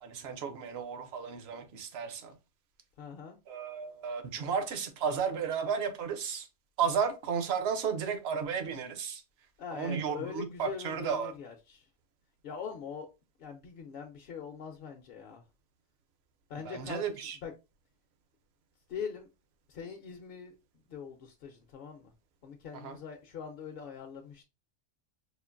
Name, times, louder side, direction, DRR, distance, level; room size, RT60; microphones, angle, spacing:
voice 1, 0.0-2.3 3.5-6.5 6.8-9.2 9.7-11.3 16.7-17.4 22.7-23.0, right 6 dB, 65° right, 0.9 m, -33 dB
voice 2, 3.0-3.4 9.6-11.9 12.4-13.1 13.4-15.4 16.5-17.5 18.9-19.3 19.7-20.6 20.9-22.1 22.4-24.4, left 6 dB, 60° left, 0.7 m, -42 dB
5.0 x 2.5 x 2.5 m
omnidirectional pair, 1.2 m